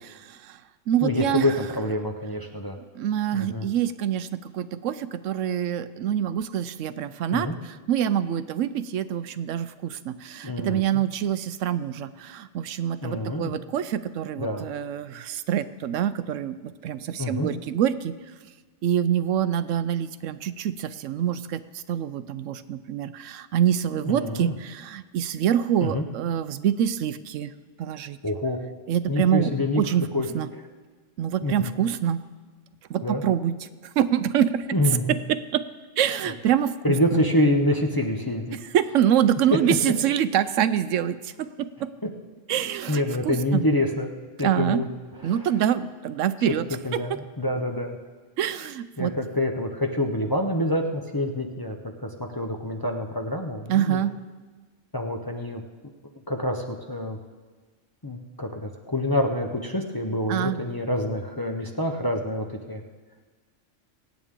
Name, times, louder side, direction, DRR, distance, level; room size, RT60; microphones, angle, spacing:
voice 1, 0.2-0.6 0.9-1.5 2.9-18.1 18.8-27.5 27.8-28.2 28.9-29.5 29.8-30.1 30.3-30.5 31.2-32.2 32.9-33.7 34.0-34.7 35.1-35.6 36.0-37.2 38.7-41.9 42.5-43.6 44.4-44.8 45.2-46.7 48.4-49.1 53.7-54.1 60.3-60.6, right 10 dB, 75° right, 13 dB, 0.9 m, -25 dB
voice 2, 1.0-2.8 3.3-3.6 7.3-7.5 10.4-11.0 13.0-13.5 14.4-14.7 17.1-17.5 24.1-24.5 25.8-26.1 28.2-28.6 29.1-29.8 30.1-30.3 30.5-30.6 31.4-31.7 33.0-33.2 34.7-35.2 36.3-36.4 36.8-38.6 42.9-44.1 44.4-44.9 45.2-45.5 46.8-48.0 49.0-54.0 54.9-55.6 56.3-57.2 58.0-62.8, left 1 dB, 20° left, 2 dB, 0.7 m, -27 dB
23.5 x 8.9 x 3.7 m, 1.4 s
omnidirectional pair, 1.3 m